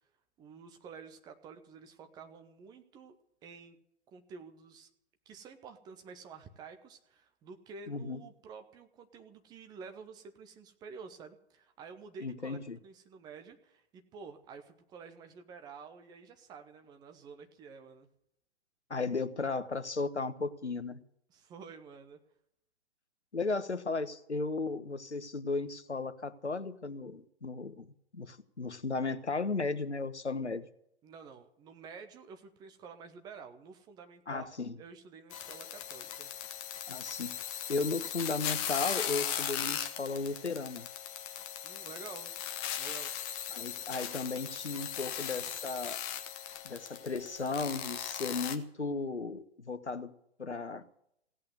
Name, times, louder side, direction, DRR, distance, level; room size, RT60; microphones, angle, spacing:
voice 1, 0.4-3.2 3.4-3.8 4.1-4.9 5.3-18.1 21.3-22.2 31.0-34.4 34.8-36.3 41.6-42.3 42.7-43.1, right 5 dB, 10° right, 0.8 m, -50 dB
voice 2, 7.9-8.2 12.2-12.8 18.9-21.0 23.3-30.7 34.3-34.8 36.9-37.4 37.7-40.9 43.5-46.0 46.6-50.8, left 3 dB, 80° left, 1.2 m, -35 dB
sound 1, 35.3-48.5, left 10 dB, 20° left, 1.0 m, -38 dB
16.5 x 8.7 x 9.2 m
figure-of-eight pair, 125°, 33 cm